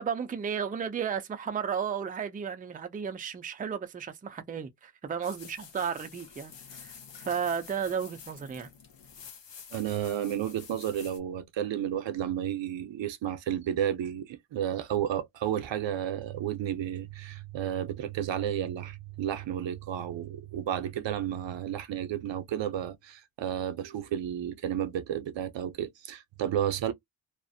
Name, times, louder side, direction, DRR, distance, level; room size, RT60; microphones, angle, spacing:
voice 1, 0.0-6.5 6.8-6.9 7.2-8.7, right 7 dB, 20° right, 0.3 m, -33 dB
sound 1, 5.2-11.2, left 7 dB, 75° left, 0.7 m, -49 dB
voice 2, 9.7-26.9, right 10 dB, 85° right, 0.6 m, -32 dB
2.4 x 2.0 x 2.6 m
wide cardioid pair, 120°, 43 cm